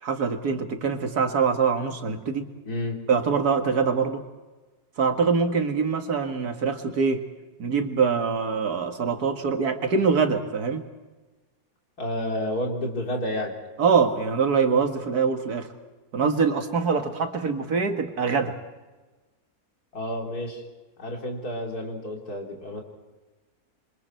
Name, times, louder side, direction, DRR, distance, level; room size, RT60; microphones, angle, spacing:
voice 1, 0.0-2.5 3.1-4.2 5.0-7.2 7.6-10.8 13.8-15.7 16.1-18.6, right 5 dB, 80° right, 5 dB, 2.3 m, -24 dB
voice 2, 2.7-3.0 12.0-13.5 19.9-20.6 21.0-22.8, left 1 dB, 75° left, 1 dB, 3.7 m, -30 dB
28.0 x 24.5 x 4.5 m, 1.2 s
omnidirectional pair, 1.6 m